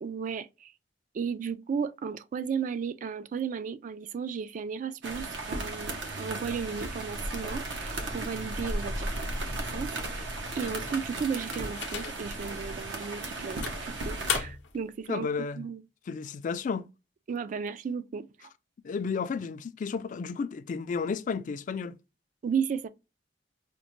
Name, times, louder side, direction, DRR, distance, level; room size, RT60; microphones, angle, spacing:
voice 1, 0.0-0.7 1.1-9.4 9.7-10.3 10.6-15.3 15.6-15.8 17.3-18.5 22.4-22.9, right 6 dB, 45° right, 0.3 m, -34 dB
sound 1, 5.0-14.4, right 2 dB, 80° right, 0.7 m, -35 dB
sound 2, 10.6-12.4 12.9-13.0 13.6-14.8, left 8 dB, 80° left, 0.6 m, -36 dB
voice 2, 15.1-15.7 16.1-16.9 18.8-22.0, left 5 dB, 45° left, 0.3 m, -32 dB
5.1 x 2.1 x 3.0 m
head